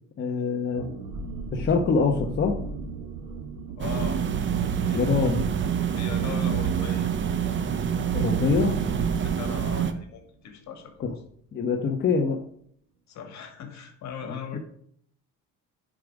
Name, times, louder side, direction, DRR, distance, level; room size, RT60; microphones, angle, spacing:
voice 1, 0.2-0.8 1.5-2.5 4.9-5.4 8.1-8.7 11.0-11.1 11.5-12.4 14.5-14.6, left 5 dB, 35° left, 1 dB, 1.0 m, -24 dB
sound 1, 0.7-10.1 10.4-10.5 10.8-11.1, right 3 dB, 90° right, 1.8 m, -39 dB
voice 2, 3.8-4.2 4.9-5.2 5.9-7.1 9.2-11.1 13.1-14.6, left 7 dB, 60° left, 5 dB, 2.0 m, -39 dB
sound 2, 3.8-9.9, right 8 dB, 35° right, 0.9 m, -26 dB
10.0 x 5.1 x 4.8 m, 0.65 s
cardioid pair, 125°, 32 cm